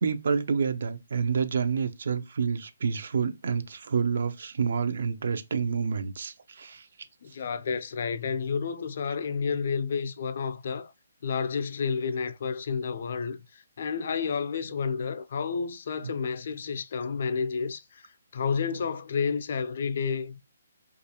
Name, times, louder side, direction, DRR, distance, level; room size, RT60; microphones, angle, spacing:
voice 1, 0.0-6.8, right 6 dB, 65° right, 0.4 m, -28 dB
voice 2, 7.2-10.9 11.2-18.0 18.3-20.4, left 5 dB, 55° left, 0.4 m, -30 dB
2.4 x 2.2 x 2.8 m
hypercardioid pair, 155°, 0 cm